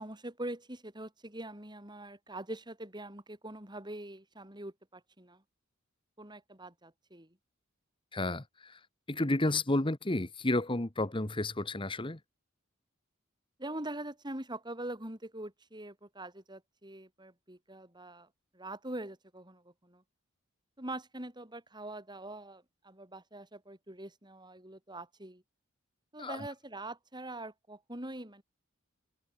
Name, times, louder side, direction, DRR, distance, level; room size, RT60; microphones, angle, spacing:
voice 1, 0.0-5.4 6.2-7.4 13.6-18.3 18.5-20.0 20.8-25.4 26.1-28.4, right 1 dB, 20° right, 6.7 m, -43 dB
voice 2, 8.1-8.8 9.1-12.2 26.2-26.4, left 2 dB, 25° left, 1.3 m, -31 dB
head